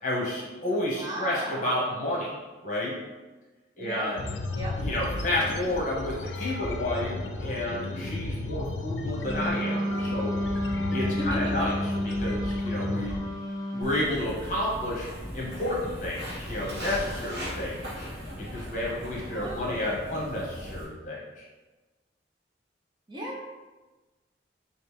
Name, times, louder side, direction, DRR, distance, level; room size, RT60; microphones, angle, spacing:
voice 1, 0.0-2.3 2.6-3.0 3.8-4.3 4.8-7.1 7.4-10.4 10.9-13.2 13.7-15.1 15.3-18.1 18.4-21.4, left 1 dB, 45° left, -5 dB, 1.0 m, -31 dB
voice 2, 1.0-1.8 3.8-4.1 4.5-4.8 11.3-11.7 19.3-19.8 23.1-23.5, equal, 25° right, -5 dB, 0.6 m, -36 dB
sound 1, 4.2-13.2, left 2 dB, 80° left, 0.4 m, -34 dB
Wind instrument woodwind instrument, 9.2-14.0, left 1 dB, 20° left, 0.7 m, -30 dB
Walk footsteps, 13.8-20.8, equal, 75° right, 1.4 m, -38 dB
3.2 x 2.8 x 3.3 m, 1.2 s
head